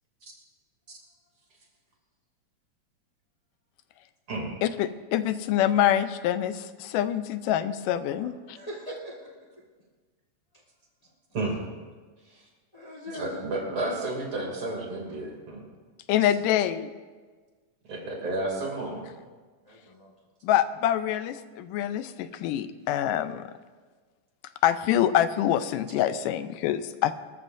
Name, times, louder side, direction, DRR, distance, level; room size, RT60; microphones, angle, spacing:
voice 1, 4.6-8.3 16.1-16.9 20.4-23.5 24.6-27.1, left 11 dB, 90° left, 12 dB, 2.3 m, -25 dB
voice 2, 8.5-9.6 11.0-11.1 12.7-13.3 18.7-18.8 19.6-20.1, equal, 30° left, -3 dB, 0.6 m, -42 dB
voice 3, 13.1-15.7 17.9-19.1, right 2 dB, 40° right, -1 dB, 3.4 m, -31 dB
24.5 x 13.5 x 2.6 m, 1.4 s
omnidirectional pair, 3.7 m